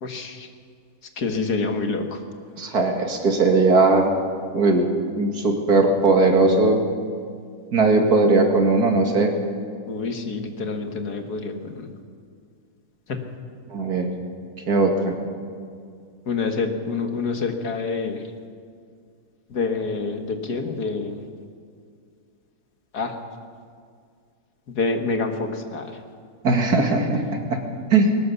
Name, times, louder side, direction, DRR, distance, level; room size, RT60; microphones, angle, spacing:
voice 1, 0.0-0.5 1.2-2.2 9.9-11.9 13.1-13.2 16.3-18.2 19.5-21.2 22.9-23.2 24.7-26.0, left 4 dB, 80° left, 5 dB, 2.3 m, -27 dB
voice 2, 2.6-4.1 4.5-4.9 5.2-6.8 7.7-9.3 13.7-14.1 14.7-15.1 26.4-27.6 27.9-28.1, right 3 dB, 75° right, 3 dB, 2.7 m, -19 dB
21.0 x 18.5 x 7.0 m, 2.2 s
omnidirectional pair, 1.7 m